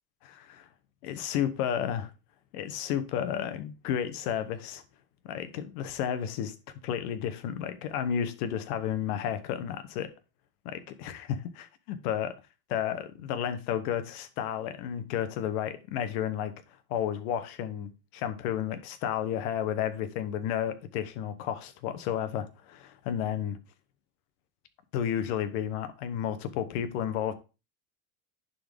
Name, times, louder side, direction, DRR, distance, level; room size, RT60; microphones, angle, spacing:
voice 1, 0.2-0.7 1.0-2.1 2.5-4.8 5.2-6.5 6.8-10.1 10.6-11.3 11.6-12.3 12.7-16.5 16.9-23.6 24.9-27.3, left 9 dB, 80° left, 1.1 m, -32 dB
11.0 x 3.9 x 3.5 m
supercardioid pair, 110°, 44 cm